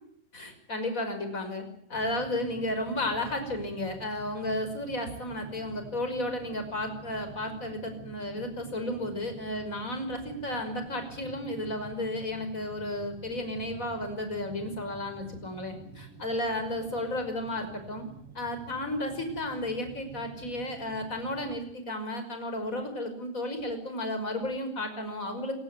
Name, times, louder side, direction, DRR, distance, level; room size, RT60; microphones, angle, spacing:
voice 1, 0.3-1.6 1.9-18.1 18.3-25.5, left 1 dB, 15° left, 7 dB, 5.4 m, -33 dB
sound 1, 1.9-21.6, right 5 dB, 50° right, 1.7 m, -48 dB
29.5 x 17.0 x 9.7 m, 0.70 s
omnidirectional pair, 5.8 m